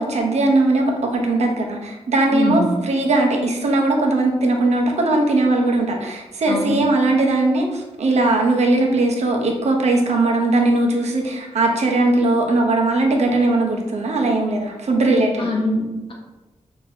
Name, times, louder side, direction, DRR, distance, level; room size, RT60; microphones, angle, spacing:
voice 1, 0.0-15.5, right 2 dB, 65° right, 1 dB, 0.7 m, -19 dB
voice 2, 2.3-2.7 6.5-6.8 15.4-16.1, left 2 dB, 45° left, -1 dB, 0.9 m, -23 dB
5.6 x 2.8 x 2.6 m, 1.1 s
wide cardioid pair, 155°, 12 cm